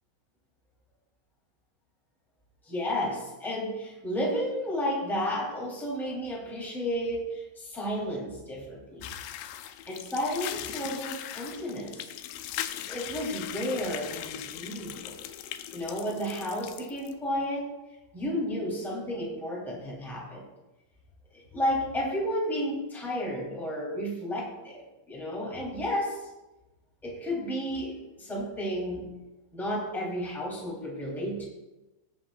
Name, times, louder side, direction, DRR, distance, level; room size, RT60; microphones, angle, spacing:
voice 1, 2.6-9.1 9.9-12.1 12.8-15.2 15.7-17.7 18.1-20.4 21.3-24.8 25.1-26.3 27.0-29.1 29.5-31.4, equal, ahead, -5 dB, 3.1 m, -32 dB
sound 1, 9.0-17.1, left 12 dB, 85° left, 2.5 m, -39 dB
20.0 x 8.0 x 2.7 m, 1.0 s
omnidirectional pair, 5.4 m